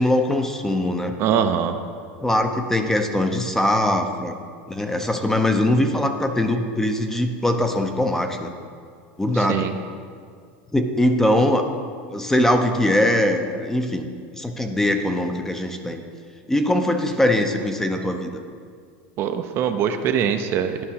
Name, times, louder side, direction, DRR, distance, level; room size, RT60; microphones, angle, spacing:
voice 1, 0.0-1.2 2.2-4.3 4.7-8.5 9.2-9.7 10.7-11.6 12.1-14.1 14.3-16.0 16.5-18.4, left 1 dB, 5° left, 5 dB, 0.5 m, -21 dB
voice 2, 1.2-1.8 9.5-9.7 19.2-20.8, right 8 dB, 45° right, 7 dB, 0.5 m, -22 dB
11.5 x 5.5 x 2.8 m, 2.1 s
supercardioid pair, 120°, 6 cm